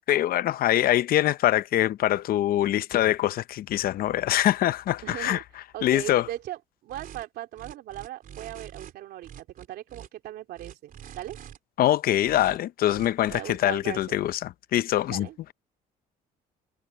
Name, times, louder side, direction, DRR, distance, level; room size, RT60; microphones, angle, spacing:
voice 1, 0.1-5.4 5.8-6.3 11.8-15.3, left 13 dB, 60° left, 0.7 m, -24 dB
voice 2, 5.0-5.4 5.7-11.4 13.3-14.1 15.1-15.4, right 14 dB, 75° right, 3.0 m, -38 dB
sound 1, 6.9-7.2 7.5-8.9 9.2-10.1 10.5-11.6 12.2-12.6 12.9-13.4, right 9 dB, 55° right, 3.8 m, -45 dB
cardioid pair, 110°, 17 cm